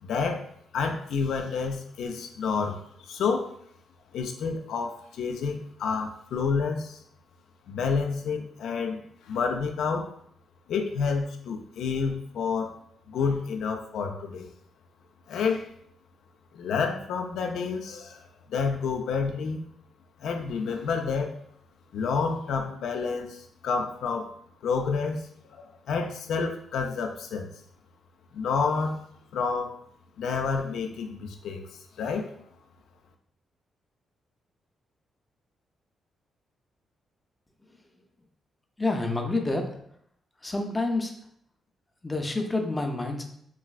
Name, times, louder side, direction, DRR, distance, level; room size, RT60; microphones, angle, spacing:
voice 1, 0.0-3.5 4.1-7.0 7.7-10.1 10.7-12.7 13.1-14.5 15.3-15.7 16.5-18.2 18.5-19.7 20.2-21.3 21.9-24.3 24.6-27.5 28.3-29.0 29.3-29.8 30.2-31.6 32.0-32.3, left 5 dB, 80° left, 4 dB, 0.4 m, -29 dB
voice 2, 38.8-39.8 40.4-41.1 42.0-43.3, left 2 dB, 15° left, 3 dB, 0.5 m, -28 dB
3.0 x 2.5 x 2.3 m, 0.68 s
cardioid pair, 85°, 0 cm